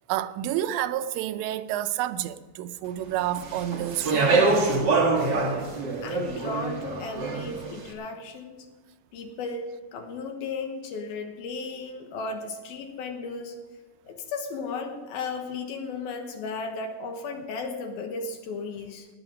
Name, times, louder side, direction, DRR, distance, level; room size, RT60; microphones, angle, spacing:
voice 1, 0.1-4.4, right 12 dB, 90° right, 2.9 m, -29 dB
Speech, 3.3-7.7, right 3 dB, 70° right, 1.0 m, -25 dB
voice 2, 6.0-8.7 9.1-13.6 14.1-19.1, left 4 dB, 70° left, 2.8 m, -35 dB
18.0 x 9.9 x 5.1 m
omnidirectional pair, 5.0 m